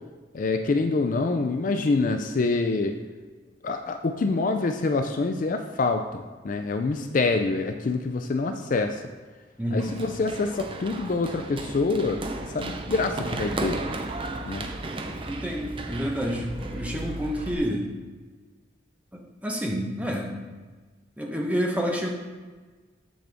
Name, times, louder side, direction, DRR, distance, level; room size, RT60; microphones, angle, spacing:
voice 1, 0.3-2.9 3.6-9.0 9.7-13.8 14.5-14.7, left 3 dB, 45° left, 6 dB, 0.4 m, -26 dB
voice 2, 9.6-9.9 15.3-17.9 19.1-20.4 21.2-22.1, equal, 5° right, 0 dB, 0.9 m, -29 dB
Run, 9.8-17.6, right 2 dB, 25° right, 0.5 m, -34 dB
7.4 x 6.2 x 3.4 m, 1.4 s
head